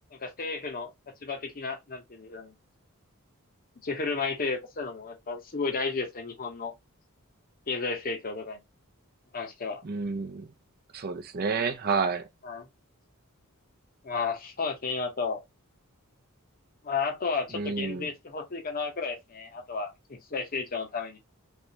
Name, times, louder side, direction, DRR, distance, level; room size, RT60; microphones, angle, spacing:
voice 1, 0.1-0.9 1.2-2.5 3.8-6.7 7.7-8.6 9.3-9.8 12.4-12.7 14.0-15.4 16.8-21.2, left 4 dB, 40° left, 0.8 m, -33 dB
voice 2, 9.8-10.5 10.9-12.3 17.5-18.1, right 4 dB, 45° right, 0.5 m, -30 dB
3.3 x 3.0 x 2.8 m
head